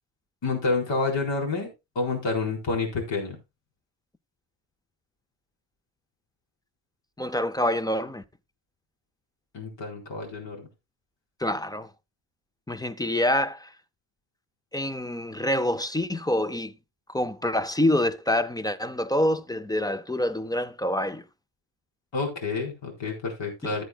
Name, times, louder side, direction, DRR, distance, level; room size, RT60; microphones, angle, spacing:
voice 1, 0.4-1.7 1.9-3.4 9.5-10.7 22.1-23.8, left 3 dB, 75° left, 4.3 m, -28 dB
voice 2, 7.2-8.2 11.4-11.9 12.7-13.7 14.7-16.7 17.1-21.2, left 1 dB, 10° left, 0.4 m, -26 dB
14.5 x 8.1 x 2.2 m
wide cardioid pair, 155°, 45 cm